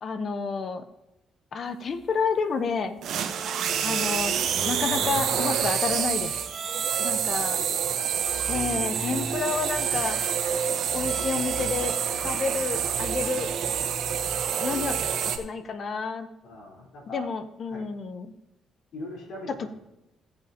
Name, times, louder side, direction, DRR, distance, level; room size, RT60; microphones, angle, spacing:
voice 1, 0.0-0.8 1.5-3.0 3.8-4.4 4.7-6.4 7.0-7.6 8.5-10.2 10.9-11.9 12.2-13.5 14.6-16.3 17.1-18.3 19.6-19.7, left 5 dB, 50° left, 10 dB, 0.9 m, -30 dB
sound 1, 3.0-15.4, right 8 dB, 75° right, 1.0 m, -27 dB
Bowed string instrument, 3.3-15.4, right 3 dB, 25° right, 0.8 m, -41 dB
voice 2, 6.8-8.4 14.3-14.8 16.4-17.3 17.7-17.9 18.9-19.8, left 1 dB, 75° left, -3 dB, 4.0 m, -43 dB
16.5 x 7.8 x 2.9 m, 0.95 s
cardioid pair, 90°, 0 cm